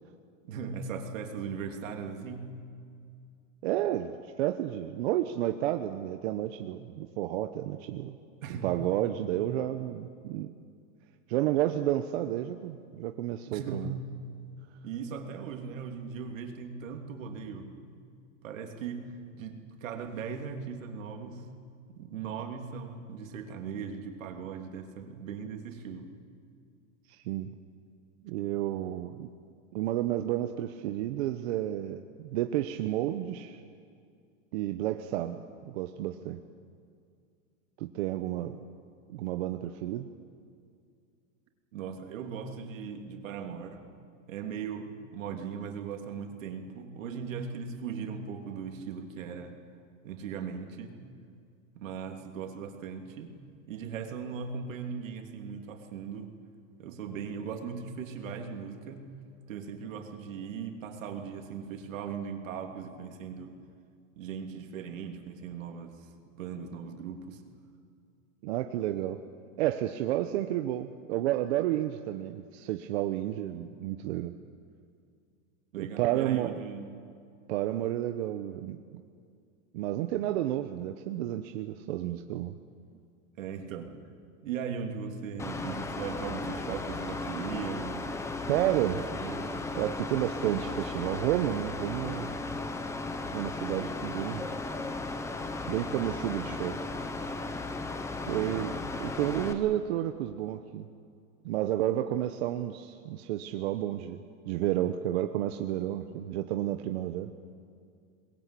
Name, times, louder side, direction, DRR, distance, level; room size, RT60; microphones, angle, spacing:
voice 1, 0.5-2.5 8.4-8.8 13.5-14.0 14.8-18.0 18.4-19.1 19.3-21.5 21.9-26.1 41.7-43.8 44.3-49.6 50.0-51.0 51.7-53.4 53.7-56.3 56.8-59.1 59.5-63.6 64.2-67.4 75.7-76.9 82.9-83.0 83.4-83.9 84.4-88.1 88.7-89.5 98.3-98.7, right 6 dB, 80° right, 4 dB, 3.1 m, -38 dB
voice 2, 3.6-8.1 8.6-10.5 11.3-14.0 27.1-27.5 28.2-29.3 29.7-33.6 34.5-36.4 37.8-38.6 39.1-40.1 68.4-69.2 69.6-74.3 75.8-76.6 77.5-79.0 79.7-82.6 88.5-89.0 89.7-92.3 93.3-94.5 95.7-96.8 98.2-98.7 99.0-100.9 101.4-107.3, right 13 dB, 55° right, 7 dB, 1.0 m, -31 dB
Mechanical fan, 85.4-99.5, left 3 dB, 5° left, 0.9 m, -36 dB
23.0 x 21.0 x 8.4 m, 2.3 s
supercardioid pair, 165°, 39 cm